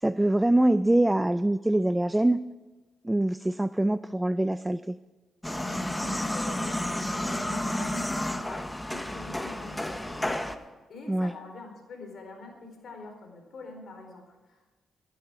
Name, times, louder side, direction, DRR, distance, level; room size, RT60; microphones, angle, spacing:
voice 1, 0.0-2.4 3.0-5.0 11.1-11.3, right 1 dB, 15° right, 14 dB, 0.5 m, -24 dB
sound 1, 5.4-10.6, left 1 dB, 10° left, 1.2 m, -31 dB
voice 2, 5.7-14.7, left 3 dB, 65° left, 3 dB, 4.3 m, -45 dB
14.5 x 12.5 x 4.9 m, 1.3 s
cardioid pair, 60°, 0 cm